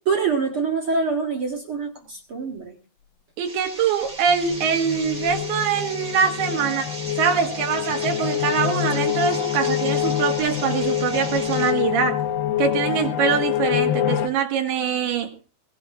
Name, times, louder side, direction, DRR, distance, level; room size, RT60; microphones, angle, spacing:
voice 1, 0.0-2.8, right 5 dB, 55° right, 2 dB, 1.5 m, -25 dB
sound 1, 3.4-11.7, right 2 dB, 25° right, 1.0 m, -37 dB
voice 2, 3.4-6.9 7.2-12.2 12.6-15.3, right 7 dB, 85° right, 5 dB, 3.7 m, -23 dB
sound 2, 4.3-14.3, left 11 dB, 75° left, 2.6 m, -26 dB
22.0 x 17.0 x 2.5 m, 0.32 s
omnidirectional pair, 4.4 m